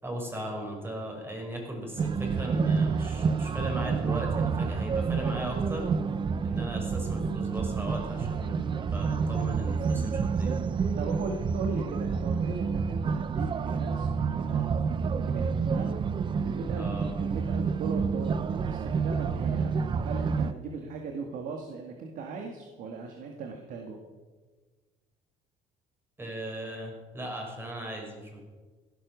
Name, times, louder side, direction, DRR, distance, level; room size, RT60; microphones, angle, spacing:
voice 1, 0.0-5.9 6.4-10.6 16.8-17.1 26.2-28.4, right 1 dB, 15° right, 1 dB, 5.2 m, -37 dB
sound 1, 2.0-20.5, right 5 dB, 35° right, 0.7 m, -29 dB
voice 2, 11.0-14.8 15.1-24.0, right 4 dB, 65° right, 3 dB, 2.0 m, -39 dB
16.0 x 12.0 x 6.4 m, 1.4 s
cardioid pair, 115°, 15 cm